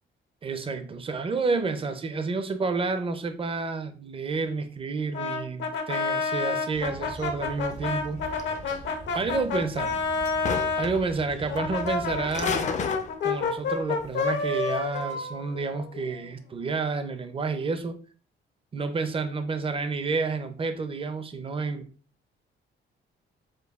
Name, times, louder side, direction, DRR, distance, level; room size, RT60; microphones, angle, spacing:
voice 1, 0.4-8.3 9.1-10.0 10.8-12.7 13.2-18.0 18.7-21.9, right 4 dB, 25° right, 9 dB, 0.5 m, -30 dB
Brass instrument, 5.1-10.9 11.5-16.3, left 4 dB, 70° left, 0.7 m, -29 dB
sound 1, 6.7-12.5, right 2 dB, 65° right, 1.2 m, -44 dB
sound 2, 7.4-9.2 9.6-11.2 11.5-13.6 14.0-14.1 14.6-15.1, left 5 dB, 35° left, 0.4 m, -34 dB
5.1 x 2.2 x 2.3 m, 0.39 s
cardioid pair, 90°, 20 cm